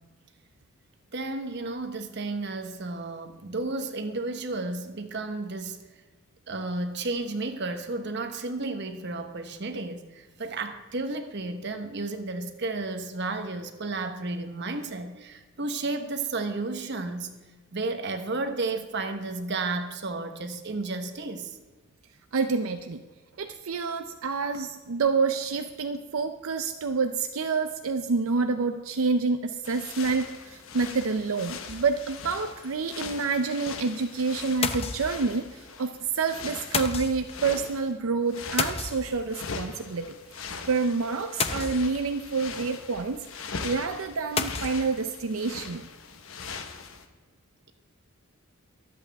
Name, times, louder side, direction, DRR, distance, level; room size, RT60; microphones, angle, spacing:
voice 1, 1.1-5.8 6.5-17.3 17.7-21.6, right 3 dB, 55° right, 7 dB, 1.1 m, -32 dB
voice 2, 22.3-23.0 23.4-40.2 40.7-43.3 43.6-45.9, right 4 dB, 80° right, 7 dB, 0.6 m, -28 dB
sound 1, 29.6-37.9 38.2-47.1, left 5 dB, 75° left, 1.1 m, -41 dB
sound 2, 31.7-32.2 32.6-32.7 32.9-33.0 34.6-35.5 36.7-37.4 38.6-39.5 41.4-42.2 44.4-44.9, left 5 dB, 30° left, 0.6 m, -31 dB
23.5 x 8.2 x 3.5 m, 1.3 s
head